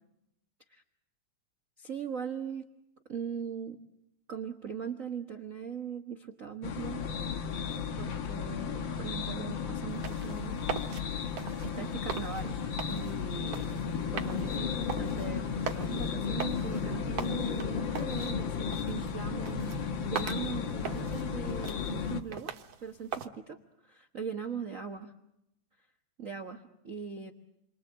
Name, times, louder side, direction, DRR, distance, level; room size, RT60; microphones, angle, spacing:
voice 1, 1.8-2.7 3.1-3.8 4.3-7.0 8.0-11.1 11.6-12.6 12.9-13.7 14.1-25.1 26.2-27.3, right 6 dB, 75° right, 5 dB, 0.7 m, -40 dB
sound 1, 6.6-22.2, left 6 dB, 55° left, 1.4 m, -34 dB
sound 2, 9.9-23.3, right 7 dB, 60° right, 2.2 m, -42 dB
29.5 x 23.5 x 8.0 m, 0.82 s
omnidirectional pair, 3.6 m